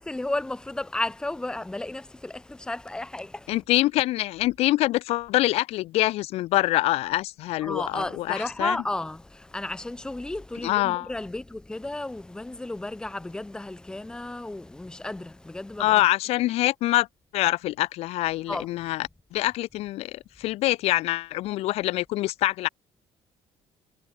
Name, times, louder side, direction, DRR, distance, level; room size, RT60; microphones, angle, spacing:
voice 1, 0.0-3.6 7.6-16.0 18.5-18.7, left 2 dB, 5° left, 2.9 m, -33 dB
voice 2, 3.5-8.8 10.6-11.1 15.8-17.1 17.3-22.7, left 17 dB, 80° left, 0.7 m, -25 dB
cardioid pair, 175°, 10 cm